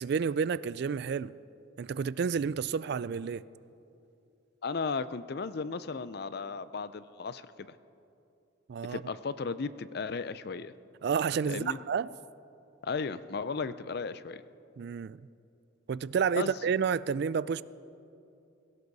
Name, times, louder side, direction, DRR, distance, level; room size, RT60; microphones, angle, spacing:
voice 1, 0.0-1.3 1.8-3.4 8.7-9.0 11.0-12.1 14.8-15.3 15.9-17.6, right 6 dB, 55° right, 0.3 m, -30 dB
voice 2, 4.6-7.4 7.7-7.8 8.9-10.7 11.5-11.8 12.8-14.4 16.4-16.5, left 4 dB, 50° left, 0.5 m, -35 dB
21.0 x 16.5 x 4.1 m
head